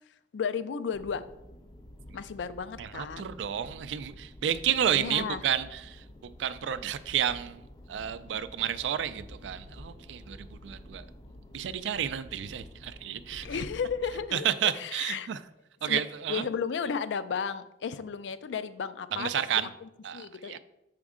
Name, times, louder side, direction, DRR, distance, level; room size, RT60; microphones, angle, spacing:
voice 1, 0.3-1.2 2.1-3.3 4.9-5.4 13.4-15.3 15.8-16.0 16.3-20.6, left 6 dB, 85° left, 13 dB, 0.4 m, -34 dB
sound 1, 0.9-14.3, left 1 dB, 20° left, 0.4 m, -49 dB
voice 2, 2.8-6.0 6.4-7.6 7.9-11.0 11.5-13.5 14.3-15.4 15.8-16.5 19.1-19.7 20.0-20.6, right 9 dB, 90° right, 14 dB, 0.3 m, -31 dB
6.1 x 4.4 x 3.7 m, 0.89 s
head